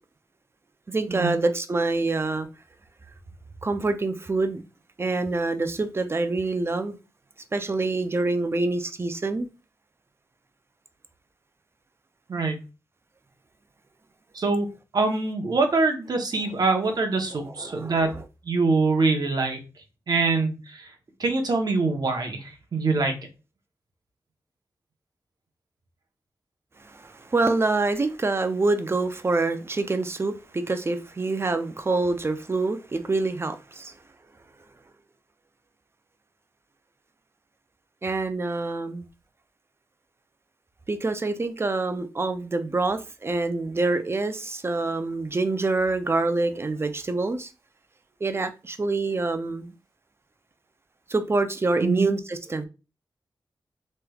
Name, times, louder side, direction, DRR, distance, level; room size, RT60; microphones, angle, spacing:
voice 1, 0.9-2.5 3.6-4.6 5.0-7.0 7.5-9.5 17.3-18.2 26.8-33.9 38.0-39.1 40.9-47.5 48.2-49.7 51.1-52.7, right 3 dB, 30° right, 0.5 m, -26 dB
voice 2, 14.3-14.7 14.9-18.1 18.5-19.6 20.1-20.8 21.2-23.2 51.8-52.1, right 3 dB, 60° right, 0.8 m, -24 dB
3.1 x 3.1 x 2.3 m
cardioid pair, 60°, 8 cm